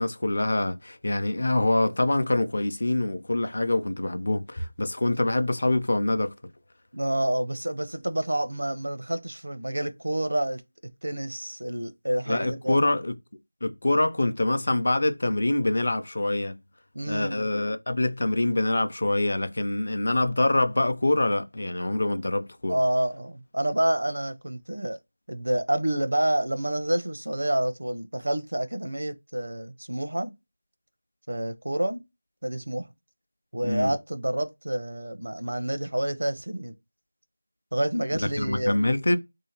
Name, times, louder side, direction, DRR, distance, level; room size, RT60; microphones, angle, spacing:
voice 1, 0.0-6.3 12.3-13.1 13.6-16.6 17.1-22.7 33.6-33.9 38.4-39.2, left 2 dB, 45° left, 0.5 m, -25 dB
voice 2, 6.9-10.6 11.0-12.8 16.9-17.5 22.7-25.0 25.3-30.3 31.3-32.0 32.4-32.9 33.5-36.7 37.7-38.8, right 1 dB, 80° right, 0.6 m, -28 dB
3.8 x 2.7 x 2.8 m
figure-of-eight pair, 175°, 0 cm